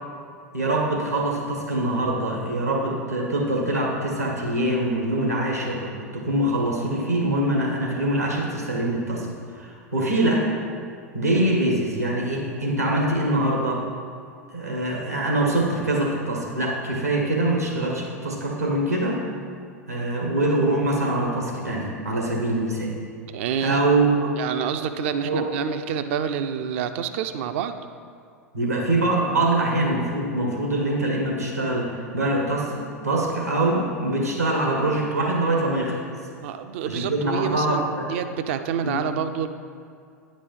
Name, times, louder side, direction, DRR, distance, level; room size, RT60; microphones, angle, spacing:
voice 1, 0.5-9.3 9.5-10.5 11.1-13.9 14.5-19.2 19.9-23.0 23.6-24.3 25.2-25.4 28.5-36.0 36.8-38.1 38.8-39.0, right 1 dB, 90° right, -1 dB, 1.7 m, -24 dB
voice 2, 23.3-23.8 24.4-27.7 36.4-39.5, right 8 dB, 55° right, 9 dB, 0.5 m, -28 dB
9.7 x 5.2 x 5.4 m, 2.3 s
figure-of-eight pair, 85°, 8 cm